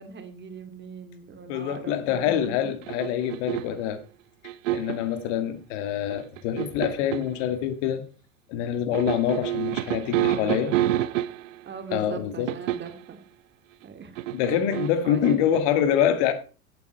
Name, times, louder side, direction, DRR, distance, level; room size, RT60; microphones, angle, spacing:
voice 1, 0.0-2.7 10.1-10.8 11.6-13.2 13.8-14.2 15.0-15.4, right 6 dB, 25° right, 2.6 m, -40 dB
voice 2, 1.5-4.0 4.7-8.1 8.5-10.7 11.9-12.5 14.3-16.3, left 9 dB, 50° left, 2.0 m, -25 dB
sound 1, 2.8-3.8 4.4-5.1 6.1-7.3 8.9-11.6 12.5-13.0 14.2-15.6, right 13 dB, 60° right, 0.9 m, -28 dB
16.5 x 8.6 x 4.6 m
figure-of-eight pair, 85°, 44 cm